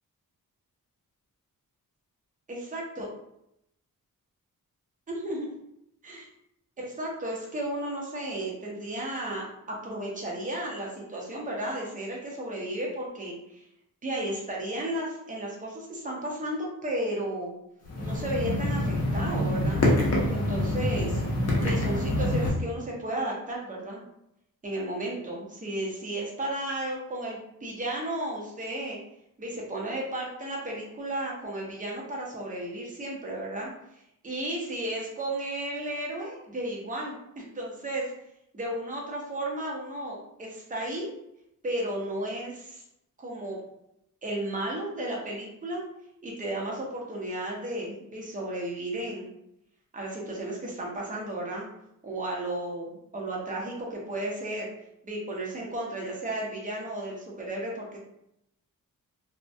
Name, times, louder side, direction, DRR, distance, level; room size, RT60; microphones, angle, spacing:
voice 1, 2.5-3.1 5.1-5.5 6.0-6.3 6.8-13.6 14.0-17.5 18.0-19.9 20.3-21.2 21.6-24.0 24.6-29.0 29.4-33.7 34.2-38.1 38.5-41.1 41.6-42.8 43.2-43.6 44.2-45.8 46.2-49.3 49.9-51.7 52.0-54.7 55.0-58.0, right 1 dB, 25° right, -2 dB, 0.6 m, -33 dB
sound 1, 17.9-22.5, left 1 dB, 45° left, 0.6 m, -26 dB
2.2 x 2.1 x 2.6 m, 0.80 s
wide cardioid pair, 135°, 34 cm